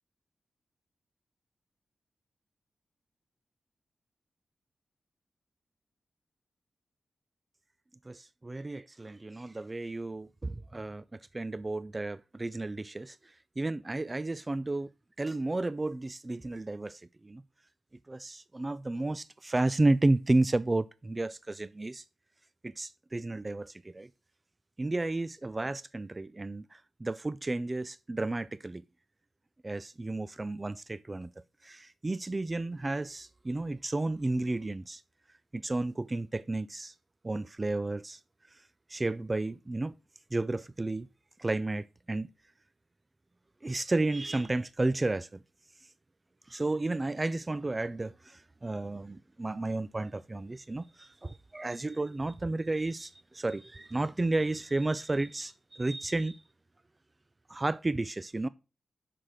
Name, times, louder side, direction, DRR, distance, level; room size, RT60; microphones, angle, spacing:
voice 1, 8.1-14.9 15.2-17.4 18.1-22.0 22.6-24.1 24.8-28.8 29.6-31.3 31.6-35.0 35.5-36.9 37.2-38.2 38.5-39.9 40.3-41.1 41.4-42.3 43.6-45.4 45.8-45.9 46.5-56.4 57.5-58.5, right 2 dB, 30° right, 0.3 m, -32 dB
6.2 x 5.8 x 4.9 m
cardioid pair, 50°, 0 cm